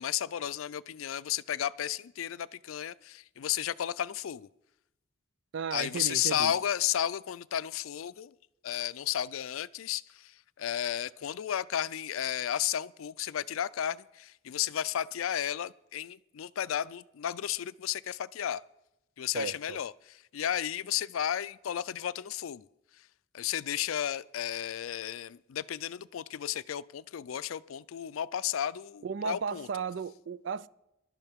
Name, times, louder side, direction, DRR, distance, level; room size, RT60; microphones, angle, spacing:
voice 1, 0.0-4.5 5.7-8.3 8.6-18.6 19.2-22.7 23.3-29.7, left 10 dB, 85° left, 0.4 m, -33 dB
voice 2, 5.5-6.5 19.3-19.8 29.0-30.7, right 6 dB, 60° right, 0.4 m, -35 dB
22.0 x 12.0 x 3.6 m
head